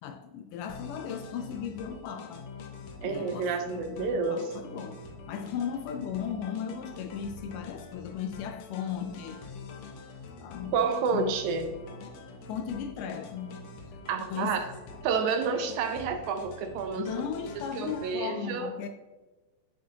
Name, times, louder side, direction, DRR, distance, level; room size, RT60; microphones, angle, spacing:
voice 1, 0.0-2.5 3.0-5.0 5.3-9.4 10.4-10.8 11.1-11.3 12.5-14.0 14.3-14.7 17.0-18.9, left 8 dB, 80° left, 2.0 m, -36 dB
sound 1, 0.7-18.2, left 4 dB, 65° left, 1.9 m, -45 dB
voice 2, 3.0-4.4 10.7-11.7 14.1-14.6 15.0-17.0 17.7-18.7, right 5 dB, 80° right, 1.8 m, -29 dB
11.5 x 7.2 x 2.8 m
omnidirectional pair, 3.9 m